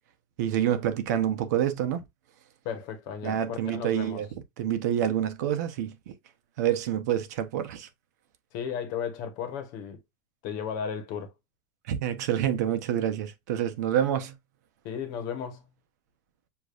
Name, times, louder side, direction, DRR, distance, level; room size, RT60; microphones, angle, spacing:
voice 1, 0.4-2.0 3.2-4.3 4.6-6.1 6.6-7.9 11.9-14.4, right 10 dB, 65° right, 0.9 m, -27 dB
voice 2, 2.6-4.2 8.5-10.0 10.4-11.3 14.8-15.6, left 7 dB, 40° left, 1.1 m, -34 dB
6.8 x 2.7 x 2.4 m
supercardioid pair, 175°, 10 cm